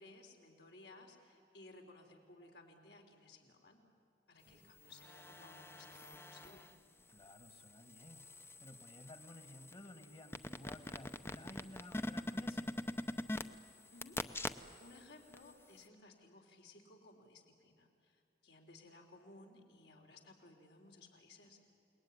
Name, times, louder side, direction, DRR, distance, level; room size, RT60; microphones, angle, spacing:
voice 1, 0.0-3.8 4.3-6.7 13.9-14.2 14.8-21.6, left 2 dB, 75° left, 2 dB, 3.7 m, -59 dB
voice 2, 4.4-4.8 7.1-12.8, left 1 dB, 30° left, 7 dB, 1.7 m, -55 dB
sound 1, 4.7-6.7 7.2-15.0 15.3-15.4, left 1 dB, 15° left, 0.7 m, -44 dB
29.0 x 20.0 x 9.8 m, 2.7 s
head